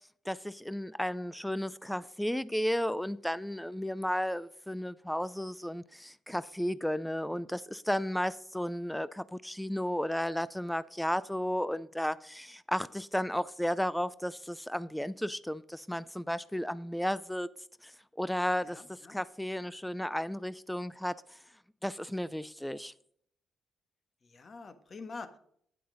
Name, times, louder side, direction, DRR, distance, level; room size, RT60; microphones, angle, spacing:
voice 1, 0.3-17.5 17.8-17.9 18.2-21.4 21.8-22.9, equal, 5° left, 0.4 m, -33 dB
voice 2, 18.6-19.2 24.2-25.4, left 4 dB, 40° left, 1.3 m, -46 dB
9.5 x 8.5 x 3.9 m
cardioid pair, 90°, 0 cm